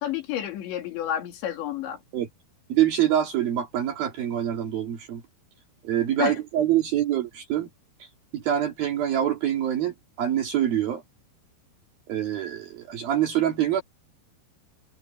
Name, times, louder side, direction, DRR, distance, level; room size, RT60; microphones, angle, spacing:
voice 1, 0.0-2.0 6.2-6.3, left 11 dB, 70° left, 4.9 m, -30 dB
voice 2, 2.7-5.2 5.8-7.7 8.3-11.0 12.1-13.8, right 11 dB, 55° right, 3.6 m, -25 dB
omnidirectional pair, 5.4 m